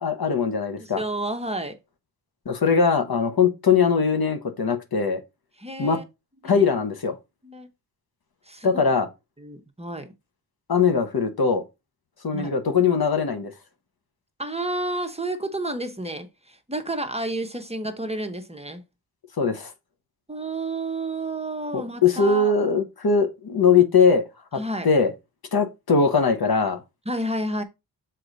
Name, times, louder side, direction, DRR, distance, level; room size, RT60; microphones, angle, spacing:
voice 1, 0.0-1.0 2.4-5.2 5.8-6.0 6.4-7.2 8.6-9.1 10.7-11.6 12.2-13.5 19.4-19.7 21.7-24.2 24.5-25.1 25.5-26.8, left 5 dB, 60° left, 1.2 m, -21 dB
voice 2, 0.8-1.8 5.6-6.0 6.4-6.7 7.4-7.7 8.5-8.8 9.4-10.1 12.3-12.5 14.4-18.8 20.3-22.5 24.6-24.9 27.1-27.6, right 1 dB, 15° right, 1.0 m, -30 dB
6.5 x 4.3 x 4.0 m
wide cardioid pair, 80°, 41 cm